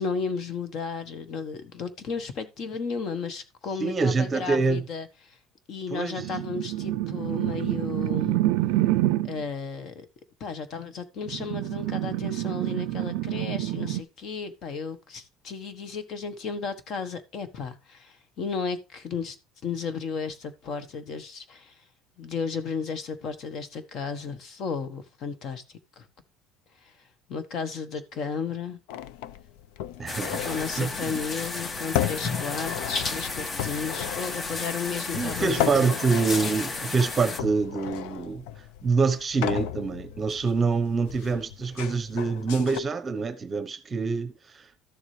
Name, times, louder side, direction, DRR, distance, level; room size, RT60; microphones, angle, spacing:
voice 1, 0.0-5.4 5.7-8.4 9.2-10.1 10.4-19.4 19.6-21.7 22.2-25.6 26.0-26.1 26.8-26.9 27.3-28.8 30.4-36.0, left 5 dB, 45° left, 1.2 m, -34 dB
voice 2, 3.8-4.8 5.9-6.2 30.0-31.2 35.1-38.4 38.8-44.6, right 4 dB, 20° right, 0.9 m, -26 dB
sound 1, 6.2-9.4 11.2-14.0, right 16 dB, 80° right, 0.4 m, -27 dB
sound 2, 28.9-42.8, left 11 dB, 85° left, 0.6 m, -35 dB
sound 3, 30.1-37.4, left 3 dB, 20° left, 0.6 m, -33 dB
13.0 x 7.3 x 3.3 m
cardioid pair, 155°, 0 cm